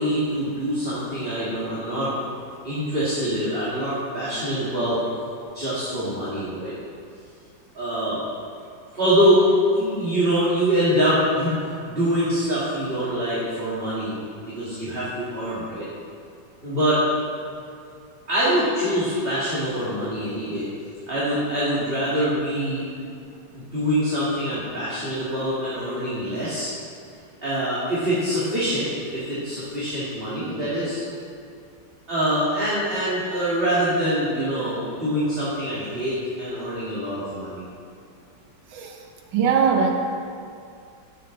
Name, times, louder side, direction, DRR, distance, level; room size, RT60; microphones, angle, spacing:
voice 1, 0.0-2.1 2.6-5.0 5.5-6.7 7.7-8.2 9.0-11.5 11.9-15.9 16.6-17.0 18.3-20.7 21.1-22.9 23.5-26.7 27.4-31.0 32.1-37.6, equal, 30° right, -9 dB, 2.4 m, -24 dB
voice 2, 39.3-39.9, right 6 dB, 85° right, 2 dB, 1.6 m, -20 dB
15.5 x 7.6 x 3.9 m, 2.4 s
omnidirectional pair, 1.9 m